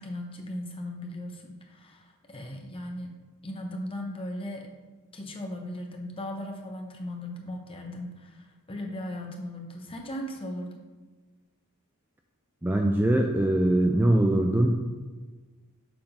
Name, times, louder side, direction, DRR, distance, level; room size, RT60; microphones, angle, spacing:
voice 1, 0.0-3.2 3.4-4.7 5.1-10.8, left 1 dB, 25° left, 2 dB, 0.9 m, -37 dB
voice 2, 12.6-14.8, right 1 dB, 10° right, 2 dB, 0.4 m, -22 dB
7.0 x 3.7 x 5.3 m, 1.3 s
head